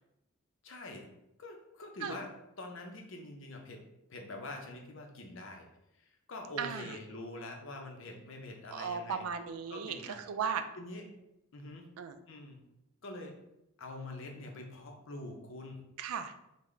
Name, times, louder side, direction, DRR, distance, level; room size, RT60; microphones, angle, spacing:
voice 1, 0.6-1.1 1.4-2.3 2.6-3.8 4.1-5.7 6.0-9.2 9.7-10.2 10.8-11.0 11.5-11.9 12.3-12.6 13.0-13.4 13.8-15.8, left 2 dB, 65° left, 2 dB, 0.6 m, -45 dB
voice 2, 6.6-7.0 8.7-10.6 12.0-12.2 16.0-16.3, right 6 dB, 85° right, 8 dB, 0.3 m, -36 dB
3.7 x 2.1 x 3.2 m, 0.85 s
head